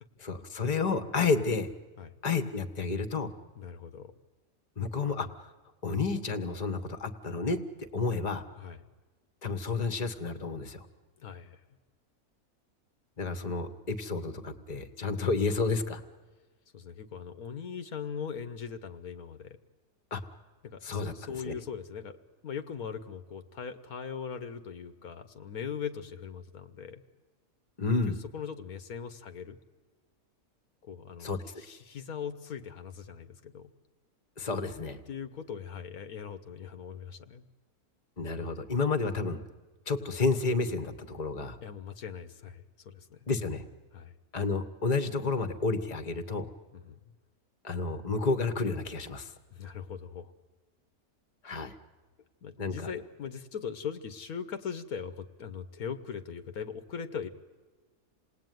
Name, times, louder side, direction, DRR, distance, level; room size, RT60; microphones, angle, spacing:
voice 1, 0.2-1.7 2.2-3.3 4.8-5.5 5.8-8.4 9.4-10.9 13.2-16.0 20.1-20.2 20.8-21.5 27.8-28.2 31.2-31.4 34.4-35.0 38.2-39.4 39.9-41.6 43.3-43.6 44.3-46.5 47.6-49.3 51.4-51.7 52.6-52.9, left 4 dB, 30° left, 10 dB, 1.3 m, -30 dB
voice 2, 3.5-4.1 8.6-8.8 11.2-11.6 16.7-19.6 20.6-22.2 22.4-27.0 28.3-29.6 30.8-33.7 35.1-37.4 41.6-43.2 43.9-44.1 46.7-47.1 49.5-50.3 52.4-57.3, left 7 dB, 75° left, 10 dB, 1.6 m, -40 dB
28.0 x 19.0 x 9.3 m, 1.3 s
omnidirectional pair, 1.6 m